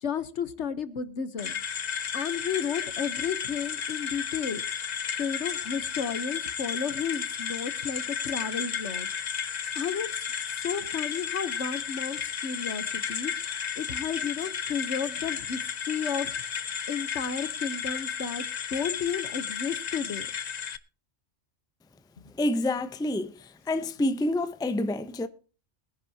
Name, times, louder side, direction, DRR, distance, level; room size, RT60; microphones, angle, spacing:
voice 1, 0.0-1.5 2.1-4.6 5.2-9.1 9.7-10.3 10.6-13.3 13.8-16.4 16.9-20.3, left 6 dB, 65° left, 1.3 m, -33 dB
sound 1, 1.4-20.8, left 7 dB, 45° left, 0.6 m, -33 dB
voice 2, 22.4-23.3 23.7-25.3, left 1 dB, 5° left, 0.6 m, -27 dB
21.0 x 10.0 x 2.8 m
omnidirectional pair, 1.3 m